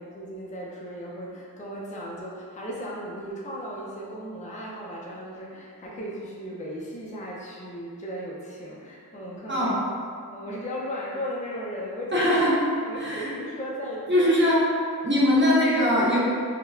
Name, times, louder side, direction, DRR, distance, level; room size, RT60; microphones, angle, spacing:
voice 1, 0.0-9.7 10.3-12.3 12.8-14.3, equal, 20° left, -4 dB, 0.4 m, -36 dB
voice 2, 9.5-9.8 12.1-12.5 13.0-13.3 14.1-14.6 15.0-16.2, equal, 30° right, -8 dB, 0.8 m, -21 dB
3.4 x 2.1 x 2.3 m, 2.3 s
wide cardioid pair, 45°, 36 cm